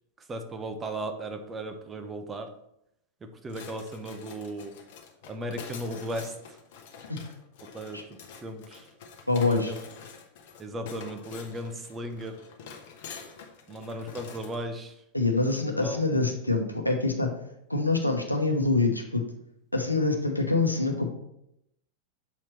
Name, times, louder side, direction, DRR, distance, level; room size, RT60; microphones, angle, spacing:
voice 1, 0.3-2.5 3.4-4.8 5.3-6.6 7.7-8.0 8.4-8.9 9.4-9.8 10.6-12.4 13.7-15.0 15.3-15.5 15.7-16.0, right 1 dB, 20° right, 6 dB, 0.8 m, -36 dB
sound 1, 3.5-14.6, left 6 dB, 50° left, 1.0 m, -46 dB
voice 2, 9.3-9.7 15.1-17.3 17.7-19.2 19.7-21.1, left 3 dB, 85° left, 3 dB, 0.9 m, -25 dB
6.9 x 4.5 x 4.3 m, 0.78 s
figure-of-eight pair, 90°, 0 cm